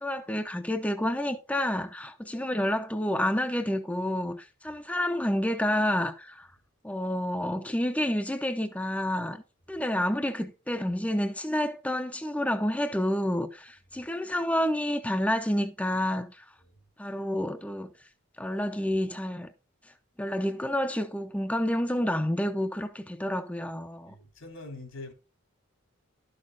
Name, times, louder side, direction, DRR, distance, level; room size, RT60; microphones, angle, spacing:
voice 1, 0.0-6.5 6.8-9.4 9.7-16.4 17.0-17.9 18.4-19.5 20.2-24.1, left 1 dB, 5° left, 0.7 m, -29 dB
voice 2, 24.1-25.1, left 2 dB, 80° left, 3.2 m, -44 dB
12.0 x 6.4 x 3.9 m
head